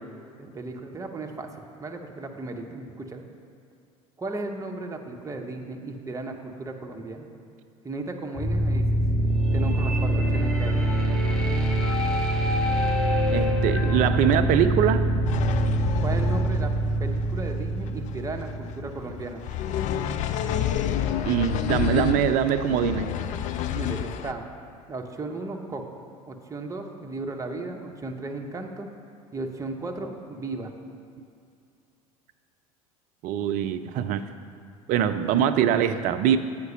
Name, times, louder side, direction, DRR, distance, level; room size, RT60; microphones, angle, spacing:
voice 1, 0.4-3.2 4.2-7.3 7.8-9.0 9.5-10.8 16.0-16.7 17.0-19.4 23.7-24.5 24.9-28.9 29.3-30.7, right 2 dB, 15° right, 3 dB, 0.8 m, -35 dB
sound 1, 8.3-19.3, right 1 dB, ahead, 1.3 m, -24 dB
voice 2, 13.3-15.0 21.2-23.1 33.2-34.2 34.9-36.4, right 9 dB, 45° right, 10 dB, 0.5 m, -23 dB
sound 2, 15.3-24.3, left 10 dB, 40° left, 0.4 m, -29 dB
8.0 x 5.1 x 5.4 m, 2.4 s
figure-of-eight pair, 75°, 19 cm